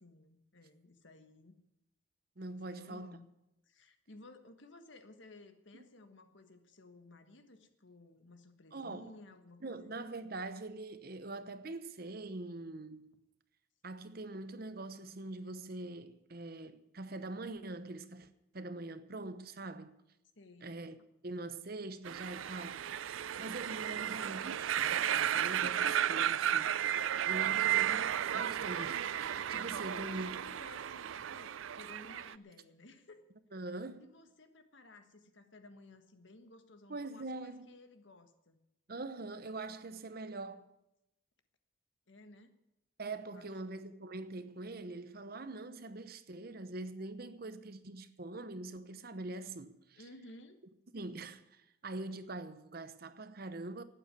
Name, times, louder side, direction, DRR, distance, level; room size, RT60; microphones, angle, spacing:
voice 1, 0.0-1.6 2.7-3.3 3.7-9.9 20.4-20.7 27.5-27.8 29.8-33.2 33.5-33.6 34.0-38.6 42.1-42.5 43.3-43.5 49.9-50.6, left 2 dB, 65° left, 1.5 m, -56 dB
voice 2, 2.4-3.2 8.7-9.1 9.6-13.1 13.8-20.0 20.6-21.0 21.2-22.9 23.4-26.7 27.3-28.0 28.3-30.4 33.5-34.1 36.9-37.7 38.9-40.7 43.0-50.0 50.9-53.8, right 2 dB, 50° right, 0.9 m, -43 dB
sound 1, 22.0-32.3, right 10 dB, 80° right, 0.4 m, -34 dB
12.0 x 9.0 x 9.7 m
head